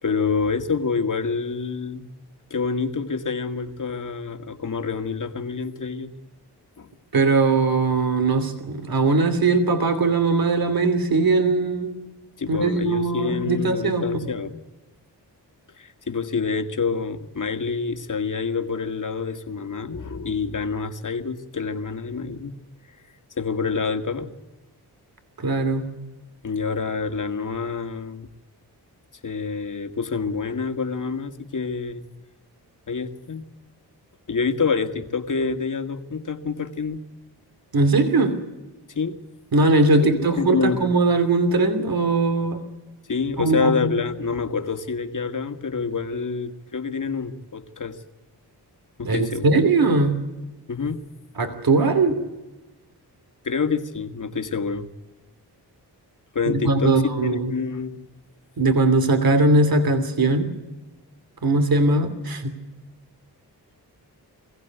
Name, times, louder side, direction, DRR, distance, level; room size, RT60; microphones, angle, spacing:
voice 1, 0.0-2.1 2.5-6.1 6.8-6.9 12.4-14.6 15.8-22.6 23.3-24.3 26.4-28.3 29.2-32.1 32.9-33.4 34.3-37.0 38.9-39.2 40.0-40.8 43.1-48.0 49.0-49.6 50.7-51.0 53.4-54.9 56.3-58.1, left 5 dB, 50° left, 7 dB, 2.0 m, -27 dB
voice 2, 7.1-12.0 12.5-14.3 25.4-25.9 37.7-38.4 39.5-42.6 43.4-44.0 49.0-50.2 51.4-52.2 56.6-57.6 58.6-60.5 61.4-62.5, right 3 dB, 60° right, 8 dB, 2.8 m, -20 dB
23.0 x 16.0 x 9.3 m, 1.1 s
cardioid pair, 55°, 40 cm